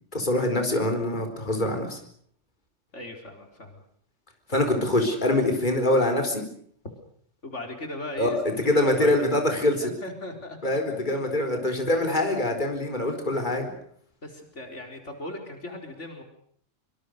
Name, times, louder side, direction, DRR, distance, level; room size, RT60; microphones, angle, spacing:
voice 1, 0.1-2.0 4.5-6.4 8.2-8.3 8.6-9.9 10.6-13.7, left 1 dB, 40° left, 4 dB, 4.5 m, -24 dB
voice 2, 2.9-3.8 7.4-9.2 9.8-11.2 11.5-12.0 14.2-16.2, left 2 dB, 75° left, 4 dB, 4.4 m, -39 dB
25.5 x 25.0 x 6.6 m, 0.64 s
omnidirectional pair, 1.2 m